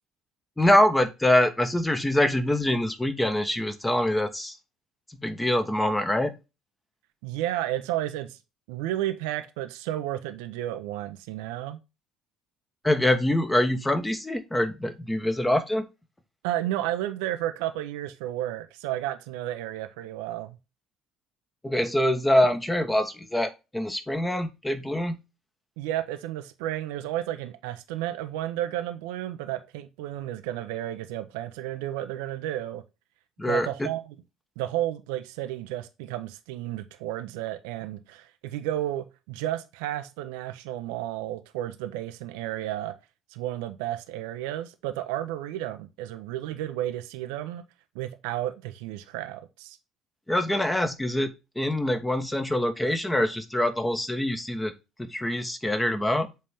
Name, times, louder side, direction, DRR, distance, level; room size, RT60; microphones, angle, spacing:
voice 1, 0.6-4.5 5.2-6.3 12.8-15.9 21.6-25.2 33.4-33.9 50.3-54.7 55.0-56.3, left 1 dB, 10° left, 1.3 m, -24 dB
voice 2, 7.2-8.4 8.7-11.8 16.4-20.6 25.8-32.8 33.5-34.1 34.6-42.9 43.3-47.6 47.9-49.8, right 13 dB, 65° right, 0.7 m, -32 dB
7.6 x 4.2 x 3.4 m
figure-of-eight pair, 55°, 0 cm